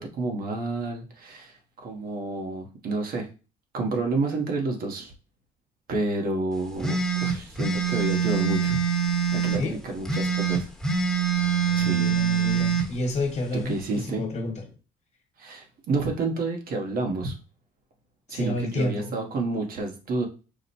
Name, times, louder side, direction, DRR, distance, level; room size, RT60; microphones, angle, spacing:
voice 1, 0.0-3.3 3.7-5.1 5.9-10.7 11.1-11.3 11.7-12.1 13.5-14.2 15.4-17.3 18.3-20.3, right 3 dB, 60° right, 2 dB, 1.2 m, -30 dB
sound 1, 6.8-9.6 10.0-12.9, right 7 dB, 5° left, 1.0 m, -24 dB
voice 2, 11.3-14.6 18.3-19.1, left 2 dB, 40° left, 4 dB, 1.4 m, -30 dB
4.9 x 2.2 x 4.2 m, 0.34 s
cardioid pair, 110°, 17 cm